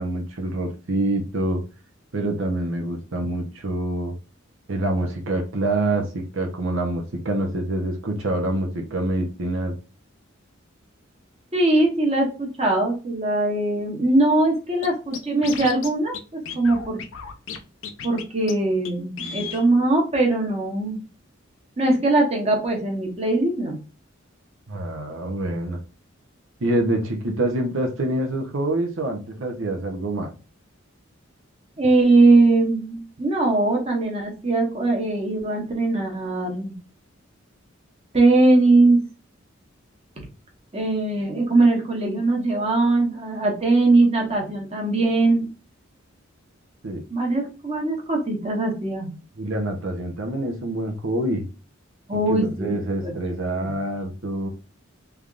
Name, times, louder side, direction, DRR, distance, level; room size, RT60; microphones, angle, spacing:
voice 1, 0.0-1.6 2.1-4.1 4.7-9.8 24.7-25.8 26.6-30.3 46.8-47.0 49.4-51.4 52.1-54.5, right 1 dB, 75° right, 3 dB, 0.8 m, -26 dB
voice 2, 11.5-17.0 18.0-21.0 21.8-23.8 31.8-36.7 38.1-39.0 40.7-45.5 47.1-49.1 52.1-53.7, right 2 dB, 30° right, 0 dB, 1.1 m, -21 dB
Scratching (performance technique), 14.8-14.9 15.1-16.2 16.5-17.6 17.8-18.2 18.5-18.6 18.8-18.9 19.2-19.6, left 6 dB, 75° left, 0.6 m, -33 dB
3.5 x 3.4 x 2.5 m, 0.32 s
head